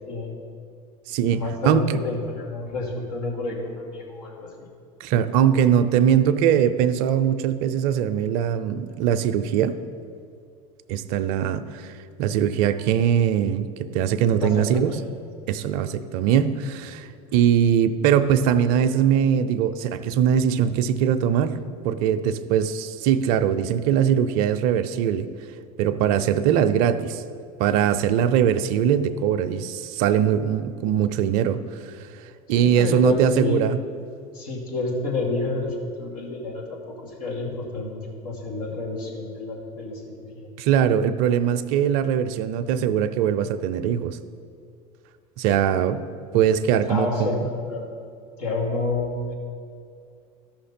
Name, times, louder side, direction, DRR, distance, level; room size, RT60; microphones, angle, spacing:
voice 1, 0.1-0.4 1.3-4.7 14.3-15.0 32.5-33.8 34.3-40.5 46.9-47.9 48.4-49.3, left 3 dB, 80° left, -2 dB, 2.3 m, -29 dB
voice 2, 1.1-2.0 5.0-9.8 10.9-11.9 12.2-14.9 15.5-25.3 25.8-27.2 27.6-31.9 32.5-33.8 40.6-44.2 45.4-46.0 46.3-47.4, right 9 dB, 60° right, 11 dB, 0.5 m, -21 dB
13.0 x 5.9 x 4.3 m, 2.3 s
hypercardioid pair, 90°, 19 cm